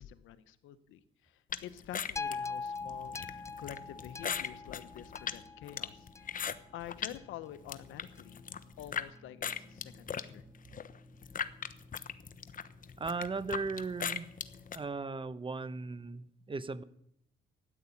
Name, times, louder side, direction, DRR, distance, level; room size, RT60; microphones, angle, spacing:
voice 1, 0.0-3.2 3.6-6.1 6.7-8.5 8.8-10.4, left 11 dB, 90° left, 13 dB, 1.0 m, -48 dB
sound 1, 1.5-7.2 7.5-9.1 9.4-14.8, left 7 dB, 45° left, 0.9 m, -39 dB
sound 2, 2.2-6.5 7.2-7.3, left 4 dB, 15° left, 0.5 m, -41 dB
sound 3, 2.8-14.9, left 1 dB, 10° right, 2.5 m, -58 dB
voice 2, 13.0-14.3 14.7-16.8, right 4 dB, 25° right, 16 dB, 0.8 m, -37 dB
13.5 x 10.0 x 8.5 m, 0.74 s
cardioid pair, 90°, 20 cm